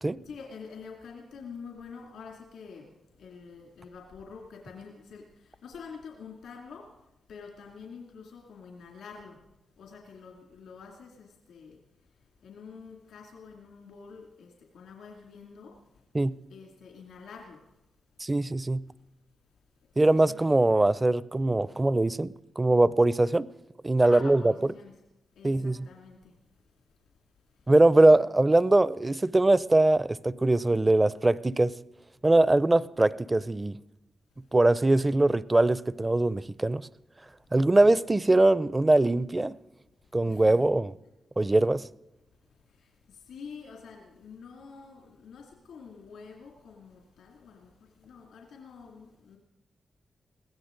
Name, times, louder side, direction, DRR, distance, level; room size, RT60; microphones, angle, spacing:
voice 1, 0.2-9.4 9.8-16.1 16.5-17.8 19.9-20.4 24.0-24.9 25.3-28.1 34.3-34.6 37.4-37.5 40.0-40.6 42.5-49.4, left 5 dB, 90° left, 2.5 m, -47 dB
voice 2, 18.2-18.8 20.0-23.5 23.8-24.4 25.4-25.9 27.7-31.8 32.2-33.8 34.5-36.8 37.5-39.6 40.1-40.9 41.4-41.9, right 2 dB, 20° right, 0.5 m, -22 dB
22.0 x 16.0 x 3.9 m
cardioid pair, 70°, 0 cm